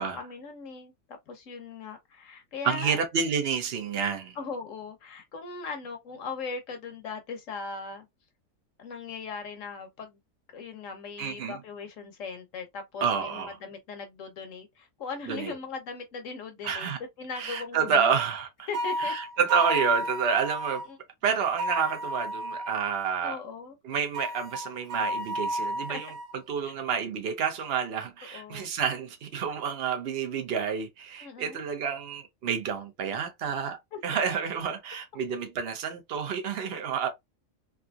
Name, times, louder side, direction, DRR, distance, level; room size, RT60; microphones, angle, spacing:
voice 1, 0.0-3.0 4.4-8.1 8.8-10.2 10.5-16.9 17.2-18.1 18.7-19.1 20.9-21.0 23.2-23.8 25.9-26.0 28.3-28.7 31.2-31.6 33.9-34.0, left 5 dB, 65° left, 1.3 m, -39 dB
voice 2, 2.6-4.4 11.2-11.6 13.0-13.6 15.3-15.5 16.6-17.0 17.3-18.7 19.0-20.8 21.2-23.4 23.8-26.1 26.5-37.1, right 7 dB, 50° right, 0.9 m, -29 dB
sound 1, 18.7-20.9 21.6-22.8 24.1-26.3, equal, 75° right, 1.2 m, -32 dB
3.5 x 2.8 x 2.3 m
omnidirectional pair, 1.5 m